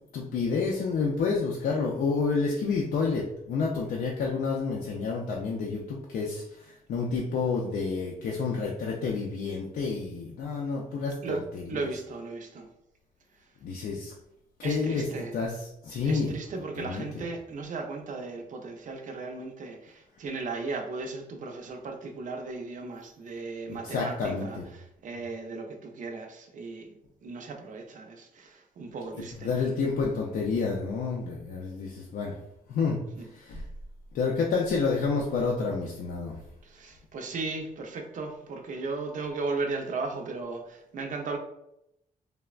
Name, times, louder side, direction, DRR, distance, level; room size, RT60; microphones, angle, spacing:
voice 1, 0.1-11.9 13.6-14.1 14.6-15.1 15.3-16.4 16.8-17.2 23.7-24.7 29.4-32.4 32.7-33.6 34.1-36.4, left 4 dB, 70° left, -2 dB, 0.4 m, -29 dB
voice 2, 11.7-12.7 14.6-15.3 16.1-26.9 27.2-29.5 33.2-33.3 36.6-41.4, right 3 dB, 55° right, 3 dB, 0.5 m, -36 dB
3.2 x 2.0 x 2.3 m, 0.81 s
cardioid pair, 105°, 16 cm